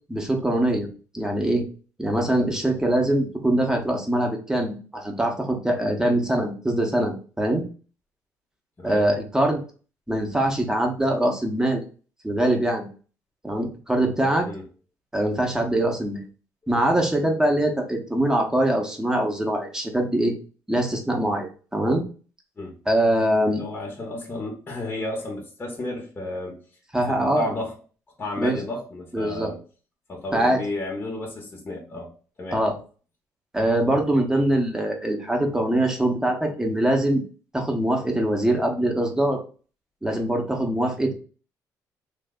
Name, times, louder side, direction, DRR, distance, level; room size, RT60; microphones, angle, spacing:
voice 1, 0.1-0.9 1.1-1.6 2.0-7.6 8.8-9.6 10.1-11.8 12.2-12.9 13.4-14.5 15.1-16.2 16.7-20.3 20.7-22.0 22.9-23.6 26.9-27.5 28.4-28.6 29.1-29.5 30.3-30.6 32.5-32.8 33.5-37.2 37.5-39.4 40.0-41.1, right 1 dB, 10° right, 2 dB, 0.8 m, -23 dB
voice 2, 23.4-26.6 27.1-27.8 28.2-29.6 30.1-32.1 32.4-32.6 33.9-34.0, left 2 dB, 30° left, -1 dB, 0.8 m, -32 dB
3.1 x 2.0 x 3.5 m, 0.39 s
cardioid pair, 90°, 7 cm